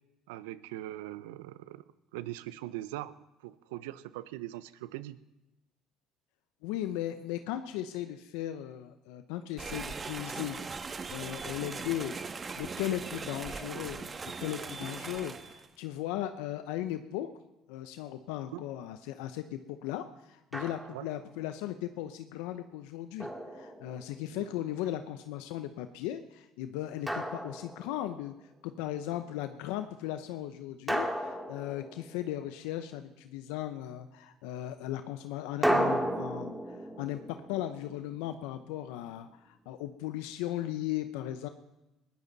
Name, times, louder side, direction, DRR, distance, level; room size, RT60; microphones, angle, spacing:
voice 1, 0.3-1.8 2.1-3.2 3.4-5.2 18.5-18.6 20.9-21.1 24.3-24.5, right 15 dB, 85° right, 16 dB, 0.7 m, -41 dB
voice 2, 6.6-17.3 17.7-28.3 28.6-41.5, left 12 dB, 80° left, 9 dB, 0.8 m, -37 dB
sound 1, 9.6-15.7, right 4 dB, 30° right, 1.3 m, -40 dB
Drum, 20.5-21.2 23.2-24.3 27.1-28.2 30.9-32.5 35.6-38.6, right 1 dB, 5° right, 2.4 m, -34 dB
20.5 x 16.5 x 4.1 m, 0.97 s
supercardioid pair, 80°, 0 cm